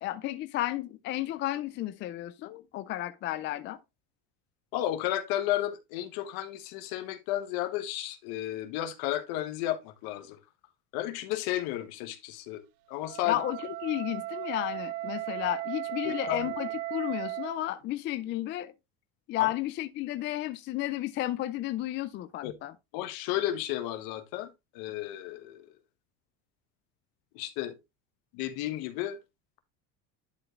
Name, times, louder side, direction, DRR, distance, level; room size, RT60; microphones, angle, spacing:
voice 1, 0.0-3.8 13.2-18.7 19.3-22.7, left 15 dB, 30° left, 0.4 m, -33 dB
voice 2, 4.7-10.4 10.9-12.6 12.9-13.4 16.0-16.5 19.4-19.5 22.4-22.5 22.9-24.5 24.7-25.6 27.3-27.7 28.3-29.2, left 13 dB, 65° left, 1.5 m, -33 dB
Wind instrument woodwind instrument, 13.0-17.6, right 16 dB, 85° right, 0.7 m, -36 dB
11.0 x 4.7 x 3.1 m
cardioid pair, 175°, 39 cm